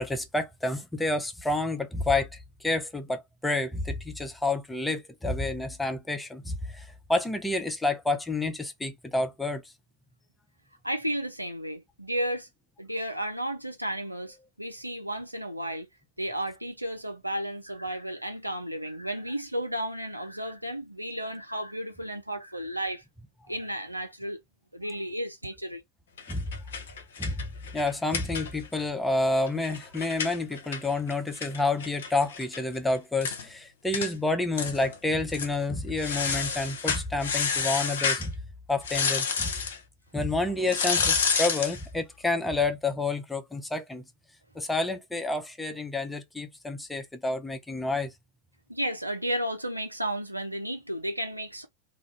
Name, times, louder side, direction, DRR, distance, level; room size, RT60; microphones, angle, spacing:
voice 1, 0.0-2.3 2.6-9.6 26.3-26.5 27.2-27.5 27.7-38.3 38.7-39.5 40.1-44.0 44.5-48.1, left 2 dB, 5° left, 0.6 m, -29 dB
voice 2, 10.8-12.5 12.8-15.9 16.2-23.0 23.5-24.4 24.7-25.8 48.7-51.7, right 1 dB, 85° right, 0.6 m, -33 dB
sound 1, 26.2-28.8 29.1-29.2 29.5-32.6 32.9-33.0 33.2-33.4 33.9-34.1 34.5-35.0 35.3-35.5 36.0-38.3 38.8-39.8 40.7-41.8, left 5 dB, 60° left, 0.7 m, -29 dB
2.5 x 2.4 x 3.3 m
figure-of-eight pair, 90°, 0 cm